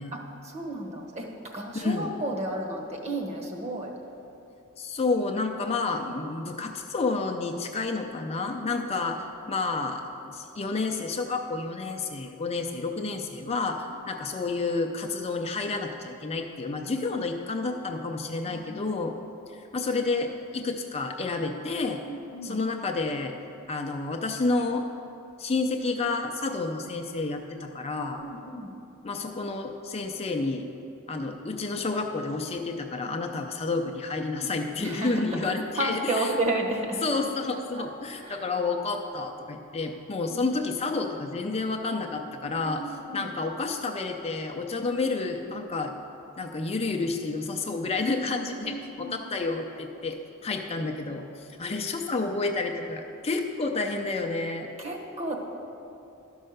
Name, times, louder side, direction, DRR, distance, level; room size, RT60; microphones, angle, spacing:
voice 1, 0.1-3.9 18.4-19.2 22.1-22.6 28.2-28.7 34.8-37.0 37.5-37.9 38.1-38.4 40.3-40.4 42.4-43.3 48.6-49.2 54.8-55.4, right 1 dB, 30° right, 1 dB, 1.2 m, -33 dB
voice 2, 1.7-2.1 4.8-19.1 19.5-22.0 22.4-23.3 23.7-24.9 25.4-28.2 29.0-30.7 31.1-36.4 37.0-42.8 43.1-45.9 46.4-54.7, left 3 dB, 30° left, 3 dB, 0.5 m, -30 dB
12.5 x 5.5 x 6.5 m, 2.8 s
head